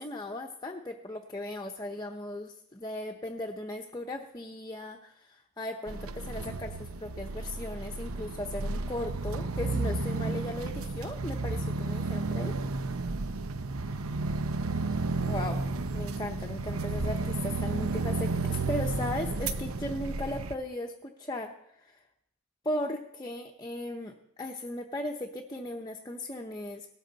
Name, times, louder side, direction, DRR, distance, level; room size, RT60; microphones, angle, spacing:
voice 1, 0.0-12.5 15.2-15.6 15.9-22.0 22.6-24.1 24.4-26.9, left 1 dB, 20° left, 2 dB, 0.8 m, -37 dB
sound 1, 5.9-20.5, right 3 dB, 70° right, 0.8 m, -32 dB
18.0 x 13.0 x 4.0 m, 0.83 s
head